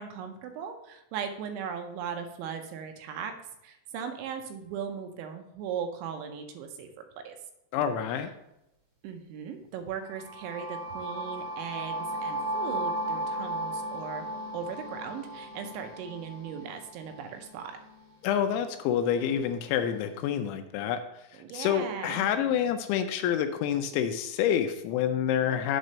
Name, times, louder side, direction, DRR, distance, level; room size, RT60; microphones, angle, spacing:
voice 1, 0.0-3.3 3.6-6.9 7.2-7.3 9.0-14.3 14.5-17.8 21.3-22.3, right 7 dB, 80° right, 6 dB, 3.0 m, -38 dB
voice 2, 7.7-8.3 18.2-21.0 21.5-25.8, left 9 dB, 80° left, 8 dB, 2.8 m, -27 dB
sound 1, 10.1-18.0, right 1 dB, 35° right, 2.5 m, -36 dB
8.0 x 4.1 x 6.4 m, 0.86 s
omnidirectional pair, 5.5 m